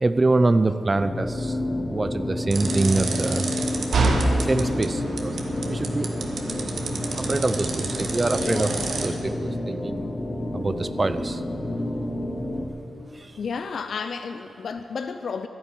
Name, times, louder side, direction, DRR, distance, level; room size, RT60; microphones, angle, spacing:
voice 1, 0.0-1.6 1.9-3.5 4.4-5.4 5.7-6.1 7.2-8.7 9.0-10.1 10.5-11.4 13.1-13.3, right 2 dB, 35° right, 11 dB, 0.5 m, -24 dB
sound 1, 0.9-12.7, left 1 dB, 45° left, 2.0 m, -30 dB
sound 2, 2.5-9.1, right 3 dB, 70° right, 1.5 m, -28 dB
voice 2, 8.4-8.9 13.4-15.5, left 5 dB, 70° left, 8 dB, 0.6 m, -32 dB
11.0 x 11.0 x 8.9 m, 2.7 s
cardioid pair, 50°, 0 cm